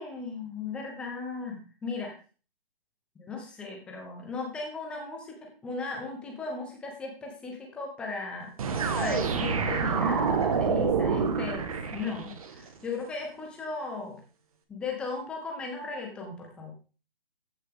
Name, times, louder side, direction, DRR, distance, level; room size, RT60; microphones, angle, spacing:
voice 1, 0.0-2.1 3.2-8.5 8.9-14.2 14.7-16.7, left 4 dB, 5° left, 1 dB, 1.0 m, -37 dB
sound 1, 8.6-12.5, right 5 dB, 40° right, 1.5 m, -27 dB
14.0 x 6.5 x 3.7 m, 0.36 s
hypercardioid pair, 170°, 29 cm